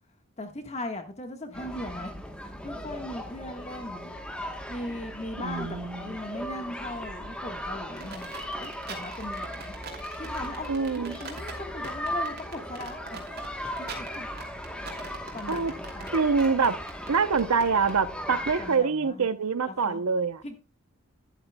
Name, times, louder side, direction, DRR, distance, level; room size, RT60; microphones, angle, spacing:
voice 1, 0.4-2.1 2.4-4.1 4.7-10.7 11.1-13.2 13.5-14.3 14.9-16.1 18.6-19.3 19.7-20.0 20.4-20.6, left 1 dB, 30° left, 5 dB, 1.5 m, -39 dB
sound 1, 1.5-18.8, equal, 5° left, 1.1 m, -37 dB
voice 2, 5.4-6.1 10.7-11.2 15.5-15.7 16.1-16.8 17.1-20.4, right 5 dB, 90° right, 13 dB, 0.8 m, -25 dB
sound 2, 8.0-17.9, right 5 dB, 45° right, 2.7 m, -43 dB
12.5 x 11.5 x 2.3 m, 0.35 s
head